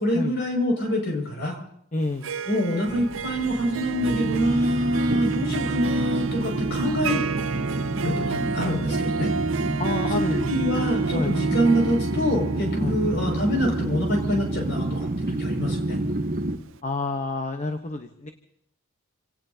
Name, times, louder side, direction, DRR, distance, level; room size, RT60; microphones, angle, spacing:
voice 1, 0.0-1.6 2.5-7.2 8.0-9.3 10.1-16.0, equal, 50° left, 2 dB, 5.9 m, -25 dB
voice 2, 1.9-2.3 9.8-10.5 10.8-11.4 12.8-13.0 16.8-18.3, left 2 dB, 35° left, 5 dB, 0.9 m, -29 dB
Harp, 2.0-16.0, right 5 dB, 60° right, 0.6 m, -31 dB
sound 1, 2.9-16.6, right 2 dB, 40° right, 1.1 m, -28 dB
28.5 x 18.0 x 2.8 m, 0.69 s
head